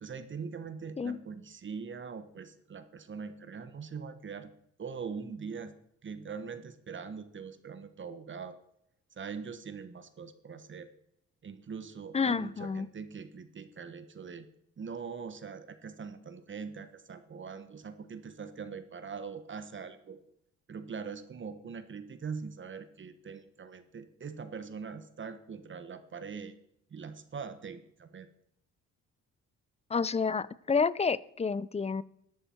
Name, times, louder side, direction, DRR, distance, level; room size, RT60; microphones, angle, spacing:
voice 1, 0.0-4.5 4.8-5.7 6.0-8.6 9.2-10.9 11.4-14.5 14.8-20.2 20.7-26.5 26.9-28.3, right 5 dB, 40° right, 11 dB, 1.2 m, -42 dB
voice 2, 12.1-12.9 29.9-32.0, left 5 dB, 20° left, 20 dB, 0.5 m, -29 dB
13.0 x 11.0 x 4.5 m, 0.74 s
cardioid pair, 90°, 30 cm